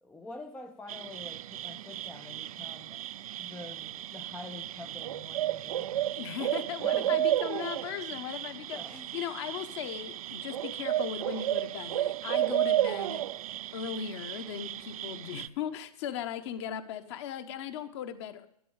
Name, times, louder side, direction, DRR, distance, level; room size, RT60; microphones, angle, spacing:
voice 1, 0.0-3.0 3.4-6.3 6.8-7.3 8.7-9.1, left 2 dB, 5° left, 5 dB, 0.5 m, -47 dB
sound 1, 0.9-15.5, right 13 dB, 65° right, 0.4 m, -33 dB
voice 2, 6.2-13.2 13.7-18.5, left 9 dB, 45° left, 9 dB, 1.2 m, -38 dB
11.5 x 11.0 x 4.8 m, 0.72 s
hypercardioid pair, 140°, 20 cm